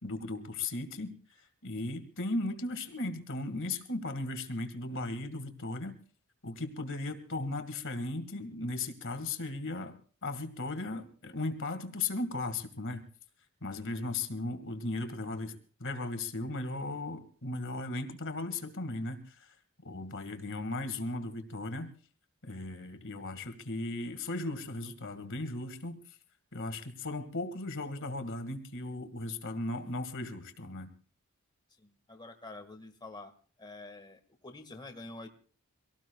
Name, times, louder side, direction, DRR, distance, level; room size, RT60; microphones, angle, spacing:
voice 1, 0.0-6.0 6.4-10.0 10.2-13.0 13.6-19.6 19.8-21.9 22.4-26.0 26.5-30.9, left 2 dB, 60° left, 10 dB, 1.9 m, -37 dB
voice 2, 31.8-33.3 33.6-35.3, left 2 dB, 20° left, 5 dB, 1.7 m, -47 dB
25.5 x 18.0 x 2.3 m, 0.42 s
head